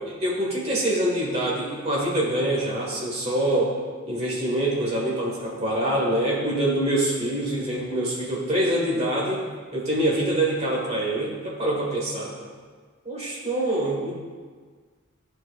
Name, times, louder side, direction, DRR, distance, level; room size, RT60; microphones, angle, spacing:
voice 1, 0.0-3.7 4.1-9.4 9.7-12.3 13.0-14.1, right 1 dB, 30° right, -5 dB, 1.6 m, -25 dB
11.0 x 4.4 x 2.5 m, 1.5 s
head